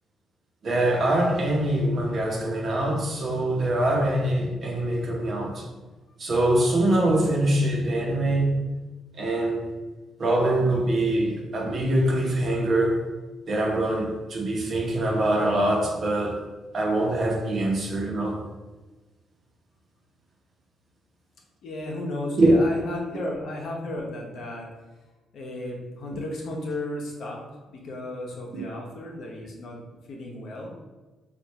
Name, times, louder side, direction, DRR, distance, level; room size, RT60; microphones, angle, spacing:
voice 1, 0.6-5.7 6.2-8.5 9.1-9.7 10.2-13.0 13.4-16.5 16.7-18.4 22.4-22.5 23.1-23.2 28.5-28.6, right 1 dB, 50° right, 0.9 m, -24 dB
voice 2, 21.6-24.7 25.3-27.4 27.7-29.8 30.1-30.7, left 1 dB, 70° left, 0.8 m, -34 dB
3.4 x 2.5 x 4.1 m
cardioid pair, 90°, 0 cm